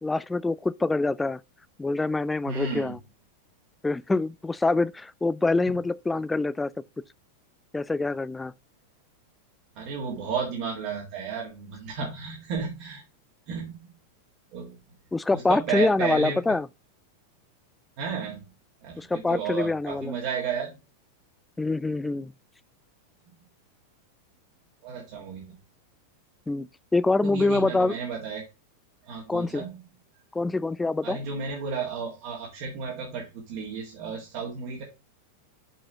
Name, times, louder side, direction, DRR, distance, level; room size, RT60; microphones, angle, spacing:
voice 1, 0.0-1.4 1.8-3.0 3.8-6.7 7.7-8.5 15.1-16.7 19.0-20.1 21.6-22.3 26.5-28.0 29.3-29.6 30.3-31.2, left 3 dB, 10° left, 0.4 m, -25 dB
voice 2, 2.5-3.0 5.7-5.8 9.8-13.0 13.5-13.9 14.5-14.8 15.3-16.6 18.0-18.4 18.8-20.8 24.8-25.6 27.2-28.4 29.0-29.7 31.0-34.8, right 5 dB, 45° right, 1.8 m, -33 dB
5.9 x 4.8 x 5.3 m
figure-of-eight pair, 90°, 0 cm